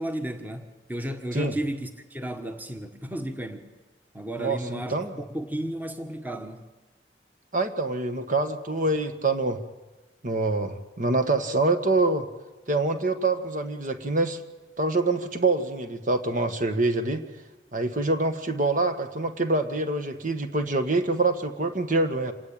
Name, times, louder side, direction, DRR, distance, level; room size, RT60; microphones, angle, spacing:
voice 1, 0.0-3.7 4.1-6.7, right 1 dB, 10° right, 1.5 m, -33 dB
voice 2, 4.4-5.1 7.5-9.6 10.2-12.3 12.7-14.4 14.8-17.2 17.7-22.3, right 2 dB, 45° right, 1.7 m, -25 dB
27.0 x 19.0 x 9.0 m
head